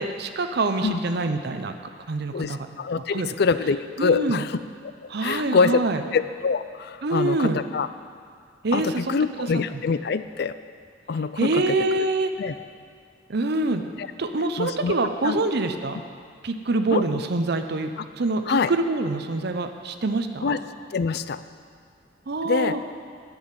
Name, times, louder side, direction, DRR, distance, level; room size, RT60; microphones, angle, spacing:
voice 1, 0.0-1.7 2.1-2.6 3.1-3.3 4.0-4.4 5.1-6.0 7.0-7.6 8.6-9.1 9.4-9.5 11.4-12.3 13.3-13.8 14.2-16.0 16.4-17.9 18.2-20.6 22.3-22.8, right 2 dB, 60° right, 7 dB, 0.7 m, -25 dB
voice 2, 2.3-4.6 5.2-5.8 6.1-7.9 8.7-10.6 11.1-12.1 12.4-12.5 14.0-14.1 14.6-14.9 15.2-15.4 16.9-17.0 18.5-18.7 20.4-20.6 20.9-21.4 22.4-22.8, left 5 dB, 60° left, 13 dB, 0.4 m, -25 dB
10.5 x 6.3 x 9.0 m, 2.1 s
head